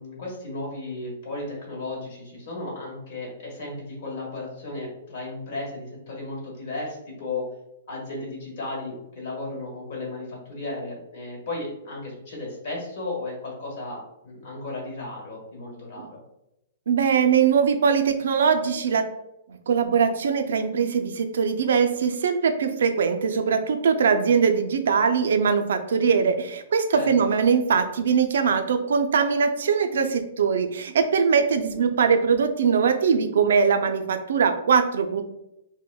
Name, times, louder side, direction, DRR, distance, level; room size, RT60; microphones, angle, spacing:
voice 1, 0.0-7.5 7.9-16.2 26.9-27.1, left 2 dB, 50° left, -2 dB, 1.3 m, -34 dB
voice 2, 16.9-19.1 19.7-35.2, right 6 dB, 75° right, 7 dB, 0.4 m, -21 dB
4.8 x 2.1 x 2.2 m, 0.87 s
hypercardioid pair, 170°, 0 cm